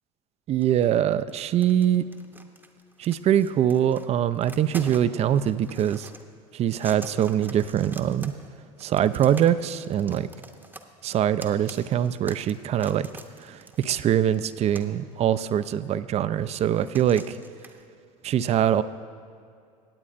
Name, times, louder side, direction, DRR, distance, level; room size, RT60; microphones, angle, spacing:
voice 1, 0.5-2.0 3.0-6.1 6.5-8.3 8.8-10.3 11.0-13.1 13.4-17.4 18.2-18.8, right 10 dB, 40° right, 14 dB, 0.4 m, -23 dB
sound 1, 0.6-1.0 1.3-4.1 4.3-6.2 6.7-8.5 8.8-15.0 15.7-15.8 16.7-17.8, right 2 dB, 10° right, 0.8 m, -45 dB
17.5 x 8.3 x 2.5 m, 2.3 s
hypercardioid pair, 80°, 18 cm